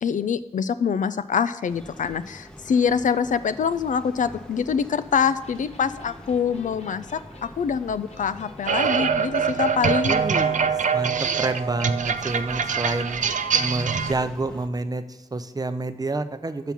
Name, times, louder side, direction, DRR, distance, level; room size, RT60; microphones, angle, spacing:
voice 1, 0.0-7.2 7.6-10.2, left 6 dB, 90° left, 13 dB, 0.4 m, -25 dB
sound 1, 1.6-14.7, equal, 5° left, 0.7 m, -44 dB
Electric guitar, 5.4-10.3, left 1 dB, 60° left, 1.2 m, -46 dB
sound 2, 8.7-14.1, right 6 dB, 90° right, 0.4 m, -24 dB
voice 2, 10.1-13.2 13.6-16.7, right 2 dB, 30° right, 10 dB, 0.5 m, -29 dB
5.9 x 5.9 x 7.0 m, 0.95 s
wide cardioid pair, 80°, 13 cm